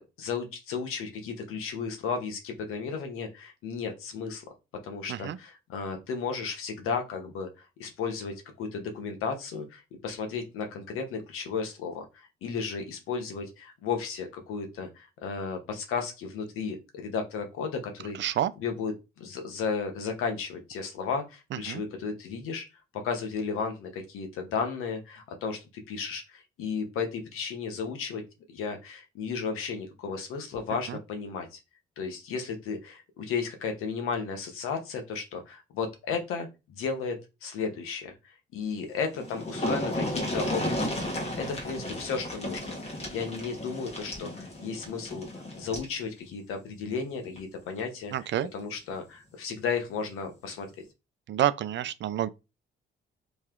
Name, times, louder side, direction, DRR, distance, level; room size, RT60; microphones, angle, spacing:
voice 1, 0.0-4.4 4.8-18.2 18.6-22.6 22.9-28.2 28.5-31.6 32.0-37.2 37.4-48.1 48.5-50.7, left 5 dB, 90° left, 1.0 m, -34 dB
voice 2, 18.2-18.5 21.7-21.8 30.9-31.0 48.1-48.5 51.3-52.3, right 11 dB, 60° right, 0.4 m, -28 dB
sound 1, 38.8-38.9 39.1-45.9 47.2-47.4 47.8-47.9, left 1 dB, 30° left, 1.5 m, -33 dB
3.2 x 2.8 x 3.7 m
cardioid pair, 75°, 21 cm